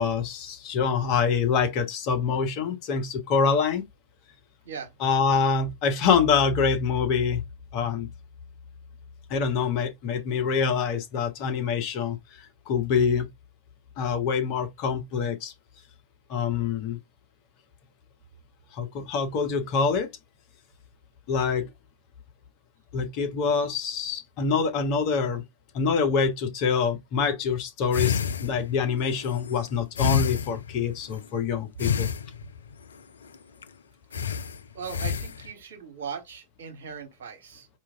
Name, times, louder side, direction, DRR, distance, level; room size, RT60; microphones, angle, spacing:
voice 1, 0.0-3.8 5.0-7.4 7.7-8.1 9.3-13.3 14.0-15.5 16.3-17.0 18.7-20.1 21.3-21.7 22.9-25.4 25.7-32.1, left 5 dB, 40° left, 0.9 m, -25 dB
sound 1, 27.9-31.3 31.8-32.7 33.3-33.4 33.6-33.7 34.1-35.5, left 7 dB, 70° left, 0.3 m, -29 dB
voice 2, 34.7-37.7, right 6 dB, 60° right, 1.2 m, -39 dB
4.4 x 2.5 x 3.5 m
figure-of-eight pair, 90°, 0 cm